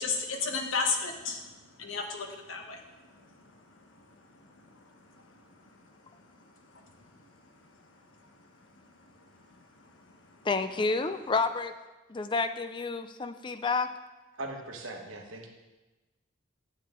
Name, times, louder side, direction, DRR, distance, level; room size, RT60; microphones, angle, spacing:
voice 1, 0.0-1.5 1.8-2.9 3.1-3.3 3.7-3.8 4.3-4.8 5.1-5.4 6.7-7.0 9.8-9.9, left 4 dB, 85° left, 3 dB, 1.1 m, -34 dB
voice 2, 10.4-11.8 12.1-13.9, left 3 dB, 25° left, 10 dB, 0.3 m, -29 dB
voice 3, 14.3-15.5, right 2 dB, 85° right, 2 dB, 1.3 m, -40 dB
9.3 x 7.7 x 3.7 m, 1.1 s
head